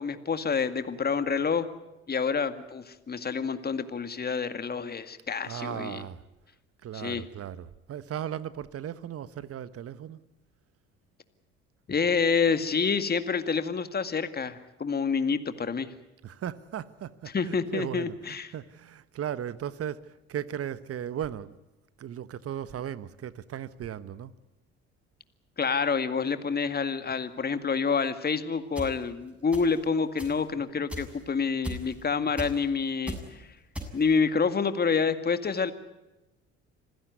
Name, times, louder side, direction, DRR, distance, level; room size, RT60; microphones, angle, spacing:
voice 1, 0.0-1.7 2.1-6.0 6.9-7.2 11.9-15.9 17.3-18.5 25.6-33.5 33.9-35.7, left 5 dB, 30° left, 2.1 m, -28 dB
voice 2, 5.4-6.2 6.8-10.2 16.2-21.6 22.0-24.3, right 10 dB, 45° right, 1.3 m, -37 dB
sound 1, 28.8-28.9 29.5-29.8 30.2-30.4 30.9-31.2 31.6-32.0 32.4-32.6 33.1-33.3 33.7-34.2, equal, 5° right, 7.1 m, -36 dB
26.5 x 16.0 x 9.5 m
hypercardioid pair, 65°, 32 cm